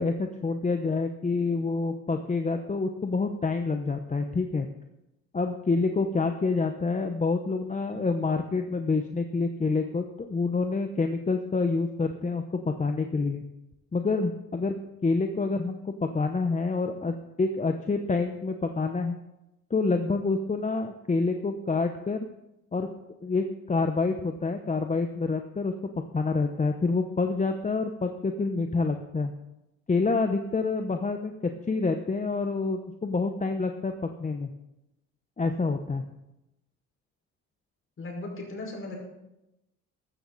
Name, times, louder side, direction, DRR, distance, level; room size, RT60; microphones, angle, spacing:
voice 1, 0.0-4.7 5.3-13.4 13.9-14.7 15.0-19.2 19.7-22.2 22.7-22.9 23.2-29.3 29.9-31.3 31.7-33.9 34.2-34.5 35.4-36.0, left 3 dB, 25° left, 5 dB, 1.0 m, -27 dB
voice 2, 38.0-39.0, left 2 dB, 45° left, 0 dB, 5.6 m, -37 dB
14.5 x 13.0 x 4.2 m, 0.91 s
cardioid pair, 90°, 30 cm